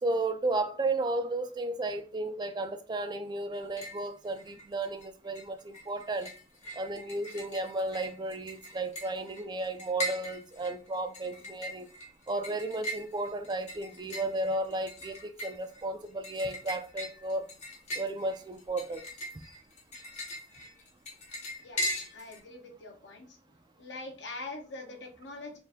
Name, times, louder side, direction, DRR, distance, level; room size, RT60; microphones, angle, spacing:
voice 1, 0.0-6.3 6.7-11.9 12.3-17.4 17.9-19.1 19.3-19.6, right 2 dB, 25° right, 0.4 m, -33 dB
sound 1, 3.5-4.1 4.4-5.1 5.4-22.4, equal, 40° left, 1.0 m, -40 dB
voice 2, 22.1-23.4 23.8-25.6, left 2 dB, 70° left, 1.1 m, -43 dB
4.3 x 2.6 x 3.4 m
head